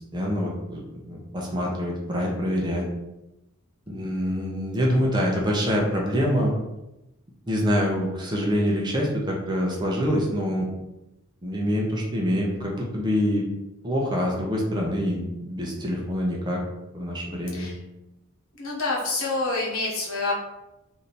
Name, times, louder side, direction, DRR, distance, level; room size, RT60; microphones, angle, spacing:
voice 1, 0.1-2.8 3.9-6.5 7.5-10.7 11.4-13.4 13.8-16.6 16.9-17.7, equal, 20° right, -2 dB, 0.6 m, -25 dB
voice 2, 18.6-20.3, left 3 dB, 70° left, -3 dB, 1.1 m, -27 dB
3.3 x 2.7 x 4.1 m, 0.94 s
head